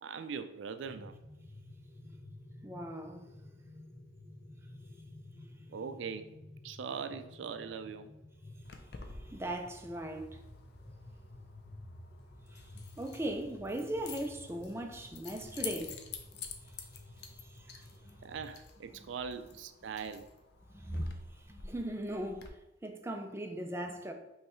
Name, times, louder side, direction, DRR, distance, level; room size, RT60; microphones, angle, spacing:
voice 1, 0.0-1.1 5.7-6.3 6.6-8.1 18.2-20.3, right 6 dB, 80° right, 0.4 m, -41 dB
sound 1, 0.8-18.5, left 1 dB, 15° left, 0.8 m, -53 dB
voice 2, 2.6-3.3 5.4-5.5 8.8-10.4 12.5-16.0 17.2-18.2 20.7-24.1, right 1 dB, 15° right, 0.4 m, -39 dB
Keys jangling, 8.6-22.5, left 5 dB, 55° left, 0.5 m, -49 dB
5.4 x 3.1 x 3.0 m
head